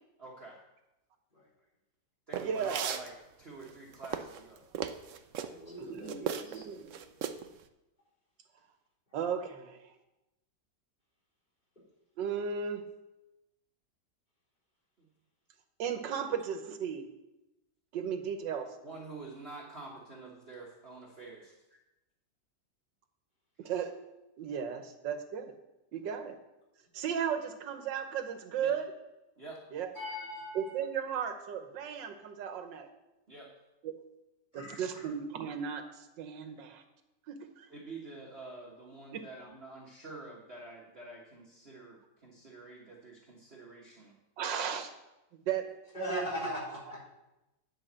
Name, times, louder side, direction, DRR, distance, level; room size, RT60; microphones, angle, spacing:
voice 1, 0.2-0.6 2.3-3.1 3.4-4.6 15.0-15.1 18.8-21.5 28.6-28.7 29.4-29.6 33.3-33.5 37.7-44.1, right 3 dB, 35° right, -4 dB, 1.5 m, -47 dB
sound 1, 2.3-3.1 3.7-5.5 6.1-6.6 6.9-7.5, right 8 dB, 65° right, 0.8 m, -36 dB
voice 2, 2.4-3.0 5.8-7.0 9.1-9.9 12.2-12.8 15.8-17.1 17.9-18.8 23.6-23.9 24.4-25.6 25.9-26.4 26.9-28.9 29.7-29.9 30.6-32.9 33.8-34.0 34.5-36.8 37.3-37.7 39.1-39.2 44.4-44.9 45.3-45.7 46.1-46.3, right 7 dB, 90° right, 7 dB, 1.6 m, -35 dB
voice 3, 5.4-6.7 29.9-30.7 34.5-35.1 45.9-47.0, left 1 dB, 25° left, -6 dB, 4.3 m, -40 dB
10.0 x 5.2 x 7.4 m, 0.95 s
omnidirectional pair, 1.9 m